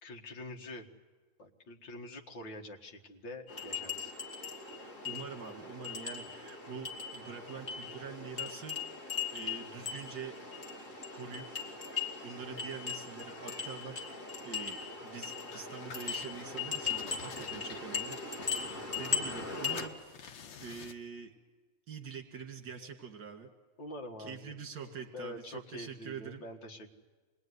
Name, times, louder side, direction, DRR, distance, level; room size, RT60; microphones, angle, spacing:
voice 1, 0.0-0.9 1.4-4.1 23.8-24.5 25.1-26.9, left 1 dB, 70° left, 2 dB, 2.5 m, -45 dB
sound 1, 3.5-19.9, left 5 dB, 40° left, 3.3 m, -39 dB
voice 2, 4.7-8.8 9.3-10.4 11.1-11.7 12.2-14.0 14.4-20.0 20.6-21.3 21.9-23.5 24.2-26.4, right 6 dB, 60° right, 4 dB, 2.6 m, -45 dB
sound 2, 15.5-16.5 16.8-19.5 19.7-21.1, left 6 dB, 90° left, 1.9 m, -50 dB
26.5 x 21.0 x 9.6 m, 1.4 s
omnidirectional pair, 2.0 m